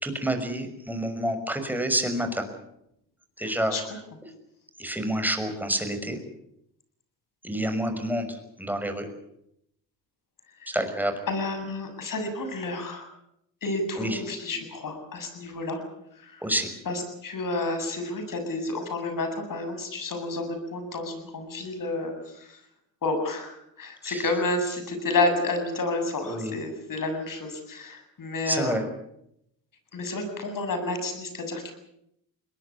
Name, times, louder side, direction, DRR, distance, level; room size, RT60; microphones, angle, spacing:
voice 1, 0.0-2.4 3.4-3.8 4.8-6.2 7.4-9.1 10.7-11.1 14.0-14.2 16.4-16.7 24.0-24.3 26.2-26.5 28.5-28.8, right 1 dB, 5° right, 6 dB, 6.1 m, -28 dB
voice 2, 3.4-3.8 10.6-10.7 11.3-13.1 13.6-15.8 16.1-16.4 16.9-22.6 23.0-28.8 29.9-31.7, left 2 dB, 50° left, 7 dB, 7.8 m, -30 dB
21.5 x 20.0 x 8.6 m, 0.78 s
supercardioid pair, 65°, 41 cm